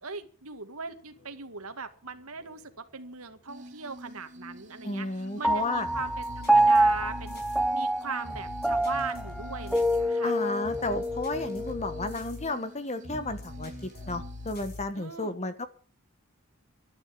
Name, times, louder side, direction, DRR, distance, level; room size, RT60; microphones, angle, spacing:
voice 1, 0.0-5.1 5.4-10.3 15.0-15.4, right 4 dB, 80° right, 9 dB, 2.0 m, -39 dB
sound 1, 0.8-15.1, left 2 dB, 45° left, 6.1 m, -45 dB
sound 2, 3.5-14.5, equal, 35° right, 2.2 m, -48 dB
voice 2, 4.8-5.9 10.2-15.7, left 2 dB, 30° left, 10 dB, 1.6 m, -33 dB
Piano, 5.4-12.1, right 1 dB, ahead, 0.7 m, -26 dB
12.0 x 11.5 x 8.5 m, 0.42 s
head